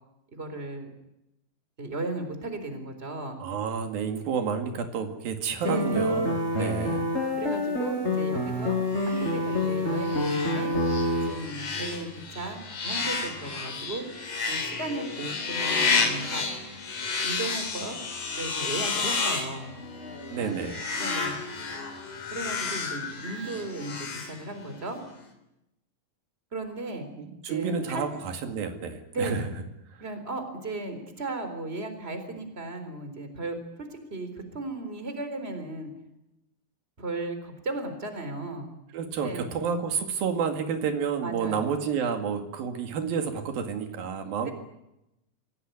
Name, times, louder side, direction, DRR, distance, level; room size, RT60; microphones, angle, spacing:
voice 1, 0.3-0.9 1.8-3.4 5.6-6.2 6.6-7.0 7.4-8.8 9.1-10.7 11.3-14.0 14.5-16.5 17.2-18.0 18.4-19.7 20.4-20.6 21.0-21.4 22.3-25.0 26.5-27.1 27.5-28.0 29.1-29.5 30.0-35.9 37.0-38.7 39.2-39.5 41.2-41.8 44.4-44.5, right 2 dB, 15° right, 8 dB, 3.9 m, -35 dB
voice 2, 3.4-7.0 20.3-20.8 27.2-29.4 38.9-44.5, right 6 dB, 85° right, 6 dB, 4.0 m, -30 dB
sound 1, 5.6-11.3, left 1 dB, 20° left, 5.6 m, -27 dB
sound 2, 8.9-24.9, left 4 dB, 60° left, 4.8 m, -31 dB
25.5 x 17.0 x 9.5 m, 0.88 s
omnidirectional pair, 4.1 m